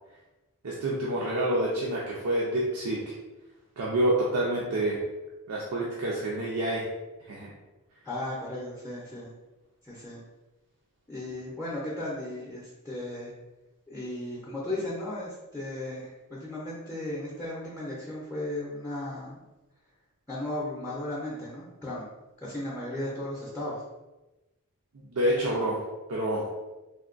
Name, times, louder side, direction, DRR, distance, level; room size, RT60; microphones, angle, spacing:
voice 1, 0.6-3.0 3.8-5.0 5.5-6.9 7.3-7.5 25.1-25.8 26.1-26.4, right 1 dB, 75° right, -5 dB, 0.5 m, -27 dB
voice 2, 8.0-9.3 9.8-10.2 11.1-13.3 13.9-19.4 20.3-22.1 22.4-23.8, left 1 dB, 10° left, -7 dB, 0.5 m, -35 dB
3.5 x 2.2 x 2.5 m, 1.1 s
head